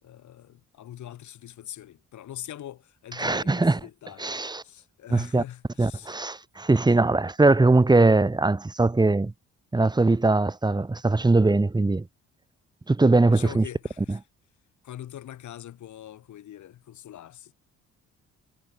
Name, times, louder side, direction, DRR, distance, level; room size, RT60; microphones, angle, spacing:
voice 1, 0.0-6.2 13.3-14.2 14.8-17.5, left 11 dB, 70° left, 4.7 m, -42 dB
voice 2, 3.2-3.8 4.2-4.6 5.1-5.4 5.8-9.3 9.7-12.1 12.9-13.6 14.1-14.2, right 2 dB, 15° right, 1.2 m, -21 dB
cardioid pair, 90°, 30 cm